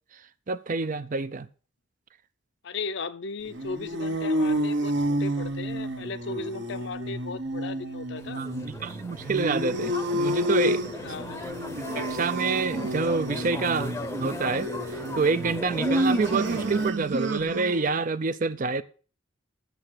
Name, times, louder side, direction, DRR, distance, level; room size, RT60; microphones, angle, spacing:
voice 1, 0.5-1.5 8.4-10.8 12.0-13.9 14.2-14.7 15.1-18.8, right 4 dB, 40° right, 0.5 m, -27 dB
voice 2, 2.6-8.4 11.0-11.4, left 4 dB, 60° left, 0.6 m, -36 dB
sound 1, 3.5-18.0, right 1 dB, 60° right, 1.1 m, -30 dB
sound 2, 8.2-16.9, left 1 dB, 15° left, 0.7 m, -37 dB
8.1 x 6.6 x 6.2 m
head